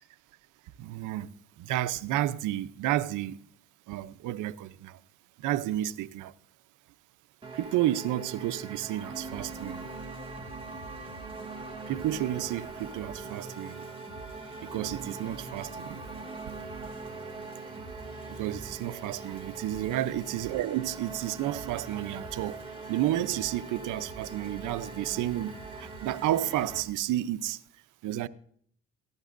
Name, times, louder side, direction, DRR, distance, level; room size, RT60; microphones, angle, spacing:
voice 1, 0.8-1.3 1.6-3.4 3.9-5.0 5.4-6.3 7.5-9.9 11.9-13.8 14.6-16.0 18.3-22.6 22.9-27.6 28.0-28.3, right 13 dB, 85° right, 0.6 m, -31 dB
sound 1, 7.4-26.8, right 4 dB, 15° right, 2.1 m, -42 dB
sound 2, 9.1-26.8, equal, 20° left, 6.0 m, -49 dB
17.0 x 15.0 x 2.5 m
cardioid pair, 90°, 30 cm